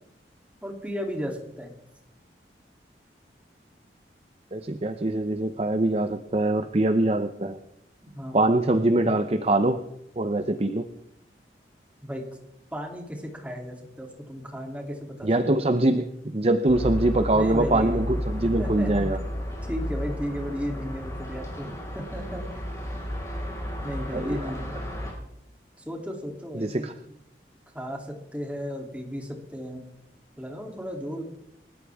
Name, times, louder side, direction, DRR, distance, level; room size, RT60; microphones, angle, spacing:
voice 1, 0.6-1.7 8.0-8.5 12.0-12.2 12.7-15.7 17.3-19.2 19.7-22.5 23.8-24.7 25.8-26.9 27.7-29.8 30.4-31.2, equal, 10° right, 1 dB, 2.9 m, -35 dB
voice 2, 4.5-7.6 8.3-9.8 10.2-10.9 15.2-19.2 24.1-24.5 26.5-26.9, right 2 dB, 35° right, 9 dB, 0.7 m, -23 dB
sound 1, 16.7-25.1, equal, 15° left, 5.2 m, -32 dB
29.0 x 14.0 x 3.6 m, 0.80 s
head